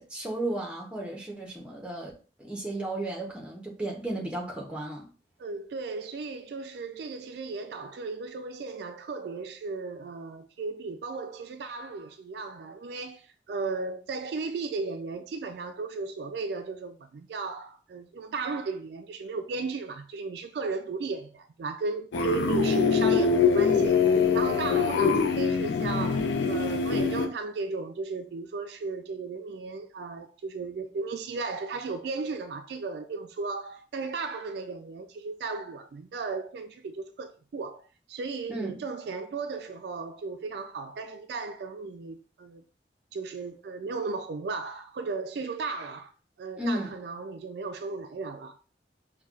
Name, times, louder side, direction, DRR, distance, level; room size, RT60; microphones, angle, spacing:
voice 1, 0.0-2.1 2.4-5.1 38.5-38.7 46.6-46.9, right 1 dB, 5° right, 0.7 m, -34 dB
voice 2, 5.4-42.6 43.1-46.1 46.4-48.6, right 4 dB, 65° right, 0.3 m, -35 dB
sound 1, 22.1-27.3, left 5 dB, 90° left, 0.4 m, -24 dB
5.3 x 2.2 x 2.4 m
head